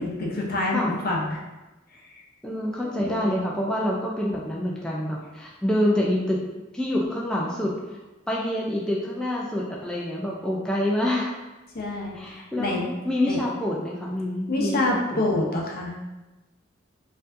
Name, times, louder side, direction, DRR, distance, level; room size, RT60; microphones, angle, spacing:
voice 1, 0.0-1.4 2.8-3.4 11.7-12.9 13.3-13.4 14.5-16.0, left 2 dB, 50° left, -2 dB, 0.7 m, -27 dB
voice 2, 2.4-6.4 6.7-8.0 8.3-11.3 12.1-15.4, left 1 dB, 5° left, -4 dB, 0.4 m, -27 dB
4.5 x 2.6 x 2.5 m, 1.1 s
head